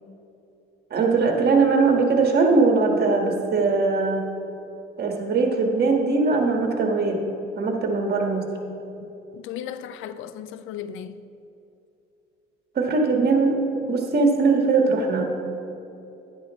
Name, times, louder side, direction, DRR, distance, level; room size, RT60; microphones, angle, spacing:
voice 1, 0.9-4.2 5.0-7.2 7.5-8.5 12.7-13.6 13.9-15.3, right 4 dB, 55° right, 1.6 m, -20 dB
voice 2, 9.0-11.2, left 9 dB, 90° left, 0.5 m, -36 dB
10.5 x 10.5 x 3.1 m
cardioid pair, 90°, 20 cm